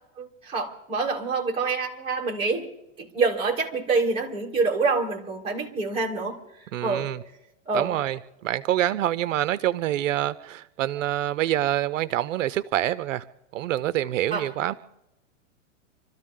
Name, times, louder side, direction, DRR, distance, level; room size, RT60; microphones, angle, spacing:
voice 1, 0.2-2.7 3.0-6.3 6.8-7.1 7.7-7.9 14.3-14.5, right 4 dB, 15° right, 2.9 m, -26 dB
voice 2, 6.7-7.2 7.7-13.2 13.5-14.7, right 13 dB, 70° right, 0.7 m, -26 dB
27.5 x 13.5 x 3.8 m
supercardioid pair, 155°, 40 cm